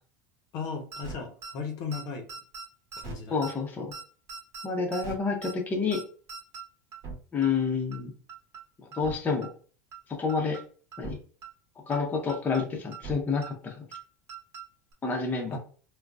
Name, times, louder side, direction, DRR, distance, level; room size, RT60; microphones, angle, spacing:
voice 1, 0.5-2.3 3.0-3.4 15.5-15.6, left 5 dB, 55° left, 2 dB, 0.8 m, -36 dB
sound 1, 0.9-1.1 1.4-1.5 1.9-2.0 2.3-2.6 2.9-3.1 3.4-3.5 3.9-4.0 4.3-4.6 4.9-5.1 5.4-5.5 5.9-6.0 6.3-6.6 6.9-7.1 7.4-7.5 7.9-8.0 8.3-8.6 8.9-9.1 9.4-9.5 9.9-10.0 10.3-10.6 10.9-11.1 11.4-11.5 11.9-12.0 12.3-12.6 12.9-13.1 13.4-13.5 13.9-14.0 14.3-14.6 14.9-15.0, right 5 dB, 40° right, 1.1 m, -40 dB
voice 2, 3.3-3.9 4.6-6.0 7.3-8.1 8.9-9.5 10.1-10.6 11.0-11.2 11.9-13.9 15.0-15.6, left 5 dB, 25° left, 1 dB, 0.8 m, -29 dB
3.7 x 2.3 x 2.3 m, 0.41 s
supercardioid pair, 110°, 7 cm